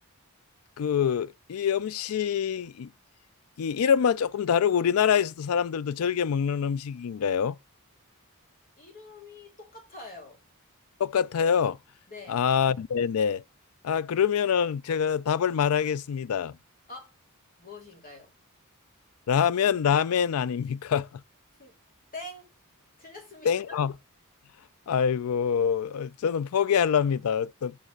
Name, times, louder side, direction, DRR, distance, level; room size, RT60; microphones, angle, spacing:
voice 1, 0.8-2.9 3.6-7.6 11.0-11.8 12.3-13.4 13.8-16.5 19.3-21.2 23.4-23.9 24.9-27.7, left 7 dB, 75° left, 0.4 m, -25 dB
voice 2, 8.8-10.4 12.1-12.4 16.9-17.1 17.6-18.3 21.6-21.7 22.1-22.5 23.0-23.8, left 2 dB, 40° left, 3.1 m, -44 dB
8.7 x 4.1 x 6.6 m
head